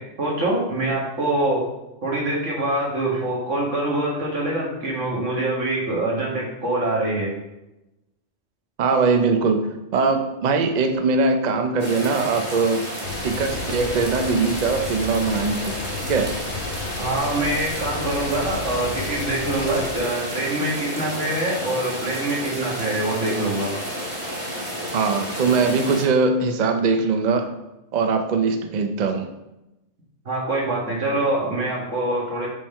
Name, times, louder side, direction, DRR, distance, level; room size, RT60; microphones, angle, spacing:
voice 1, 0.0-1.7 2.0-7.3 17.0-23.7 30.3-32.5, right 1 dB, 75° right, -4 dB, 1.9 m, -24 dB
voice 2, 8.8-12.8 13.2-16.3 24.9-27.5 27.9-29.3, right 4 dB, 50° right, 6 dB, 0.5 m, -21 dB
sound 1, 11.8-26.0, equal, 25° right, 1.7 m, -31 dB
sound 2, 13.0-20.0, left 5 dB, 90° left, 1.0 m, -34 dB
5.4 x 3.6 x 5.5 m, 0.95 s
omnidirectional pair, 1.3 m